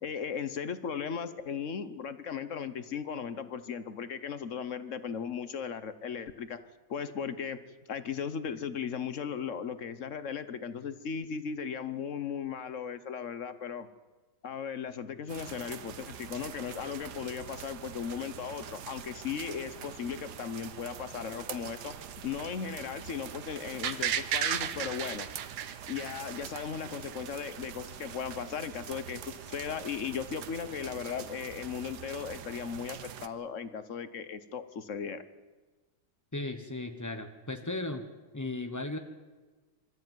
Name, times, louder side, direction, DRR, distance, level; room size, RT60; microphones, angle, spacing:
voice 1, 0.0-6.6 6.9-7.6 7.9-13.9 14.4-21.9 22.2-25.3 25.9-35.2, left 7 dB, 50° left, 12 dB, 1.0 m, -37 dB
sound 1, 15.3-33.3, right 9 dB, 55° right, 1.4 m, -45 dB
sound 2, 23.8-26.8 27.1-27.2, right 9 dB, 85° right, 1.9 m, -32 dB
voice 2, 36.3-38.0 38.3-39.0, left 2 dB, 25° left, 6 dB, 0.3 m, -36 dB
25.0 x 13.5 x 9.3 m, 1.3 s
omnidirectional pair, 2.3 m